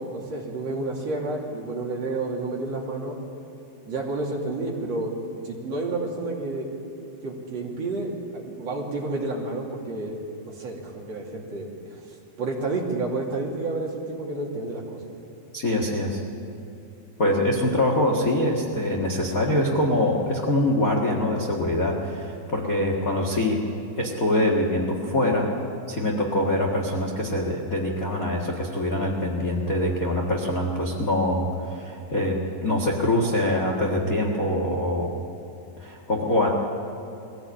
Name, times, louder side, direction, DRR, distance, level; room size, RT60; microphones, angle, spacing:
voice 1, 0.1-3.2 3.8-5.1 5.4-6.7 7.2-12.0 12.4-15.0, right 2 dB, 45° right, -2 dB, 3.4 m, -30 dB
voice 2, 15.5-16.2 17.2-23.7 23.9-25.5 25.9-35.1 35.8-36.5, left 1 dB, 50° left, 0 dB, 1.0 m, -24 dB
22.5 x 16.0 x 8.7 m, 2.7 s
omnidirectional pair, 4.6 m